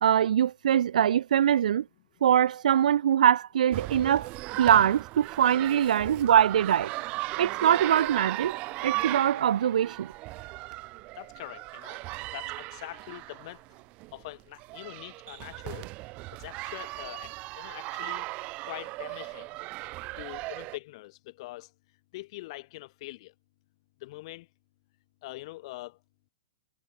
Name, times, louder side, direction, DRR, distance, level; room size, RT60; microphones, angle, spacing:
voice 1, 0.0-1.8 2.2-4.3 4.6-6.9 7.4-8.6 8.8-10.1, right 9 dB, 85° right, 0.6 m, -23 dB
sound 1, 3.7-20.8, right 22 dB, 30° right, 1.0 m, -37 dB
voice 2, 11.1-12.0 12.3-13.6 14.1-15.9 16.3-18.3 18.6-19.6 20.1-21.7 22.1-23.3 24.0-24.5 25.2-26.0, left 19 dB, 45° left, 7.7 m, -43 dB
supercardioid pair, 160°, 4 cm